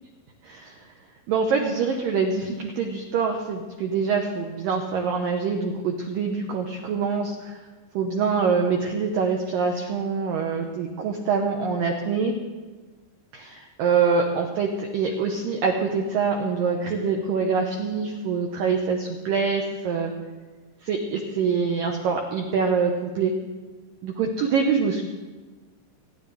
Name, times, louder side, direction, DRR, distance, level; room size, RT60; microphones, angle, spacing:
voice 1, 0.4-0.8 1.3-7.6 7.9-12.3 13.3-20.1 20.8-23.3 24.0-25.0, right 5 dB, 90° right, 2 dB, 2.0 m, -25 dB
26.0 x 10.5 x 3.4 m, 1.3 s
omnidirectional pair, 5.4 m